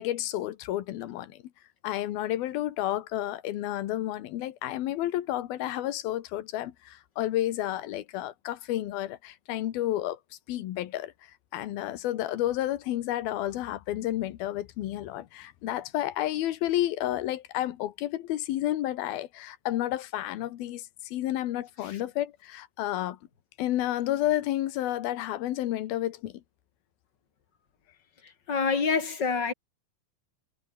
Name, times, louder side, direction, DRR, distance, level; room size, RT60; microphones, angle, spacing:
voice 1, 0.0-1.4 1.8-10.2 10.5-11.1 11.5-23.2 23.6-26.4, left 14 dB, 75° left, 3.1 m, -31 dB
voice 2, 28.2-29.5, left 5 dB, 30° left, 3.4 m, -27 dB
omnidirectional pair, 4.3 m